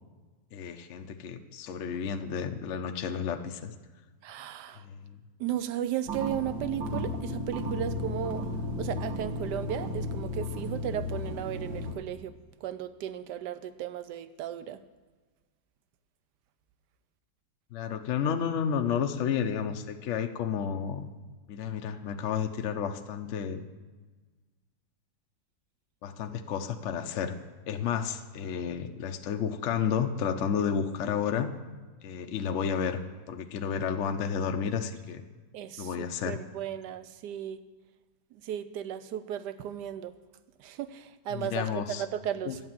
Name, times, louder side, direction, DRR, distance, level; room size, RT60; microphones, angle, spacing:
voice 1, 0.5-3.7 4.8-5.2 17.7-21.1 21.5-23.7 26.0-27.4 27.7-31.6 32.0-33.0 33.3-35.2 35.8-36.4 41.3-42.0 42.4-42.5, left 7 dB, 60° left, 6 dB, 0.8 m, -31 dB
voice 2, 4.2-4.9 5.4-8.5 8.8-12.3 12.6-14.8 35.5-37.6 38.3-40.1 40.6-42.7, right 10 dB, 70° right, 13 dB, 1.2 m, -35 dB
sound 1, 6.0-11.9, left 1 dB, 85° right, 2.2 m, -34 dB
11.0 x 8.9 x 7.5 m, 1.3 s
omnidirectional pair, 2.0 m